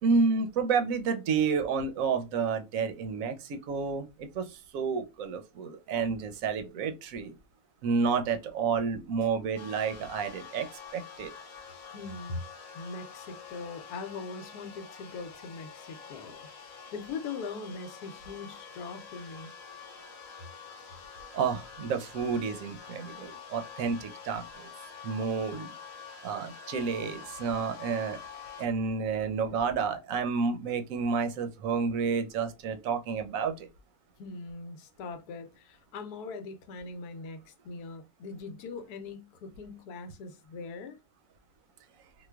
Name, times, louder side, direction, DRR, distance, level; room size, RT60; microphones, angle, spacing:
voice 1, 0.0-4.1 4.3-7.3 7.8-10.7 10.9-11.3 21.3-24.7 25.0-25.7 26.2-28.2 28.6-33.7, right 5 dB, 70° right, 0.9 m, -30 dB
sound 1, 9.6-28.7, left 6 dB, 65° left, 1.0 m, -47 dB
voice 2, 11.9-12.4 12.7-16.5 16.9-19.5 34.2-41.0, left 4 dB, 85° left, 1.1 m, -41 dB
4.3 x 2.2 x 2.2 m
omnidirectional pair, 1.6 m